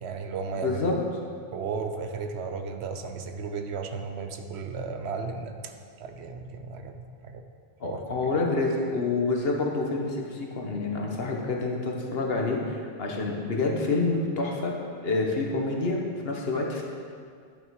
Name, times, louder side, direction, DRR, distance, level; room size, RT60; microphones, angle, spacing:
voice 1, 0.0-1.0 1.5-7.4 7.8-8.3, right 5 dB, 80° right, 6 dB, 1.0 m, -35 dB
voice 2, 0.6-0.9 7.8-14.7 15.0-16.8, left 3 dB, 65° left, 0 dB, 1.4 m, -28 dB
11.5 x 5.8 x 4.8 m, 2.2 s
omnidirectional pair, 1.1 m